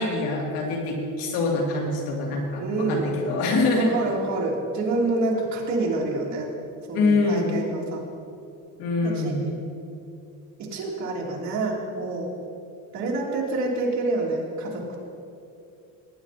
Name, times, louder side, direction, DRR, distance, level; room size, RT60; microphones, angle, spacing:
voice 1, 0.0-3.9 6.9-7.5 8.8-9.4, left 3 dB, 90° left, -1 dB, 3.0 m, -24 dB
voice 2, 2.6-3.0 3.7-6.5 6.9-8.0 9.0-9.3 10.7-12.3 12.9-15.0, right 2 dB, 55° right, -3 dB, 3.1 m, -27 dB
19.0 x 9.7 x 4.3 m, 2.6 s
cardioid pair, 140°, 34 cm